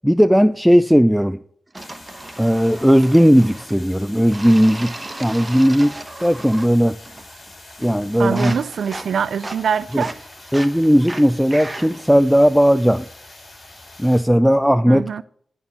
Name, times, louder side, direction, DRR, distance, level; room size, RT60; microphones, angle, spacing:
voice 1, 0.0-1.4 2.4-4.9 5.2-6.9 7.8-8.5 9.9-10.0 10.5-13.0 14.0-15.2, equal, ahead, 0.3 m, -16 dB
sound 1, 1.7-3.8 4.3-6.8 7.0-7.5 7.8-12.1, right 2 dB, 30° right, 1.0 m, -36 dB
sound 2, 1.8-14.2, left 2 dB, 45° left, 2.9 m, -44 dB
voice 2, 8.2-10.1 14.9-15.2, right 7 dB, 85° right, 0.3 m, -23 dB
11.0 x 4.4 x 6.9 m
cardioid pair, 60°, 0 cm